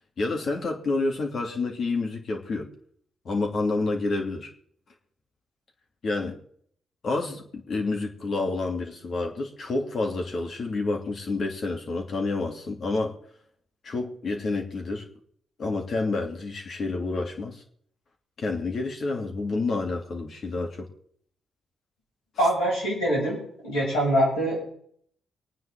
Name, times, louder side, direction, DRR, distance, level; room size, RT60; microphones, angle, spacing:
voice 1, 0.2-2.7 3.2-4.5 6.0-6.4 7.0-13.2 13.8-15.1 15.6-17.6 18.4-20.9, left 3 dB, 55° left, 2 dB, 3.0 m, -29 dB
voice 2, 22.4-23.4 23.6-24.6, right 1 dB, 80° left, -5 dB, 7.9 m, -23 dB
24.5 x 9.4 x 3.8 m, 0.63 s
hypercardioid pair, 45°, 0 cm